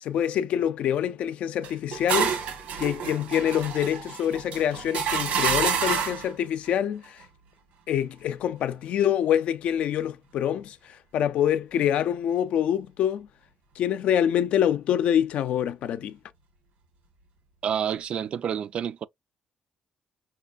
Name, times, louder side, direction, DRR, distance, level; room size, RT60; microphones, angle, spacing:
voice 1, 0.0-2.3 2.8-7.2 7.9-13.3 13.8-16.2, left 10 dB, 75° left, 0.5 m, -26 dB
sound 1, 1.6-6.3, right 6 dB, 85° right, 1.3 m, -28 dB
voice 2, 17.6-19.1, right 8 dB, 55° right, 0.3 m, -29 dB
5.5 x 2.3 x 2.5 m
cardioid pair, 120°, 2 cm